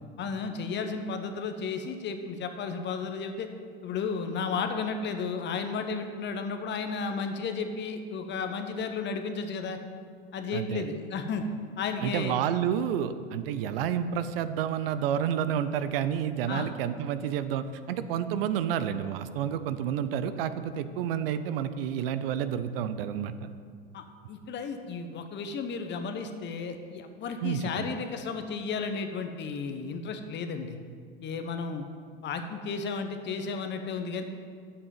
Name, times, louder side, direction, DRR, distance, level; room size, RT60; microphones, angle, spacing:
voice 1, 0.2-3.5 3.8-9.8 10.3-11.4 11.8-12.4 16.5-16.7 23.9-30.8 31.2-31.9 32.2-34.2, left 5 dB, 35° left, 7 dB, 1.0 m, -33 dB
voice 2, 10.5-10.8 12.0-23.5 27.4-27.9, right 9 dB, 65° right, 12 dB, 0.6 m, -30 dB
7.7 x 6.0 x 7.5 m, 2.1 s
hypercardioid pair, 80°, 31 cm